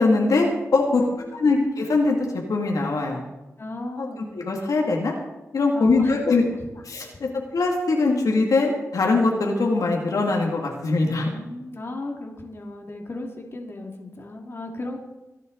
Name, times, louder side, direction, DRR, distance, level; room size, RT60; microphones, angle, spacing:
voice 1, 0.0-1.1 1.4-2.2 2.5-3.2 4.0-4.1 4.3-5.1 5.5-6.4 6.8-11.3, left 3 dB, 75° left, 0 dB, 2.4 m, -22 dB
voice 2, 0.9-1.7 3.6-4.2 5.7-6.6 11.2-15.0, left 2 dB, 45° left, 1 dB, 2.4 m, -36 dB
25.0 x 8.3 x 4.0 m, 1.0 s
wide cardioid pair, 80°, 6 cm